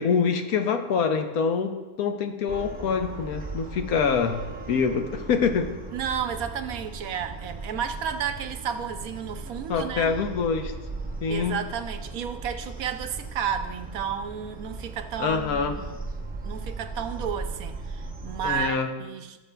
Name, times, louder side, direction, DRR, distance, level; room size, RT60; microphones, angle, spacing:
voice 1, 0.0-4.4 4.7-5.7 9.7-10.7 11.2-11.6 15.2-15.7 18.4-18.9, left 6 dB, 75° left, 6 dB, 1.2 m, -25 dB
sound 1, 2.5-18.7, right 3 dB, 10° right, 0.4 m, -38 dB
voice 2, 5.9-10.1 11.3-16.0 16.4-19.4, right 8 dB, 75° right, 8 dB, 1.0 m, -32 dB
17.5 x 6.8 x 2.3 m, 1.2 s
omnidirectional pair, 1.6 m